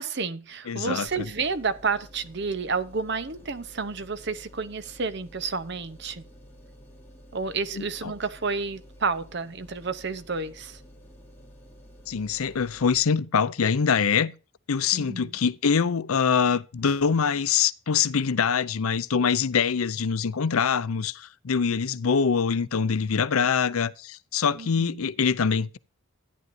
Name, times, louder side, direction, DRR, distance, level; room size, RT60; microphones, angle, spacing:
voice 1, 0.0-6.2 7.3-10.8 14.9-15.3 24.5-25.1, right 4 dB, 50° right, 0.8 m, -30 dB
voice 2, 0.7-1.2 7.7-8.1 12.1-14.3 14.7-25.8, left 6 dB, 85° left, 0.6 m, -24 dB
sound 1, 1.1-13.0, equal, 10° left, 3.2 m, -50 dB
13.5 x 9.4 x 2.6 m
head